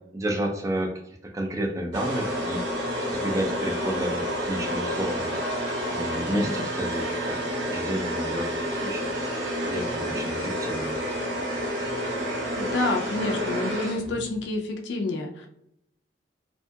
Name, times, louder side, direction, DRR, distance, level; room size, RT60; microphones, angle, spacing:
voice 1, 0.1-2.6 3.0-5.6 5.9-7.4 7.7-9.1 9.6-10.9, right 1 dB, 20° right, 2 dB, 0.4 m, -31 dB
sound 1, 1.9-14.3, equal, 70° right, 0.8 m, -29 dB
voice 2, 6.3-6.6 12.6-15.5, left 2 dB, 65° left, 2 dB, 0.4 m, -28 dB
2.7 x 2.7 x 2.2 m, 0.77 s
head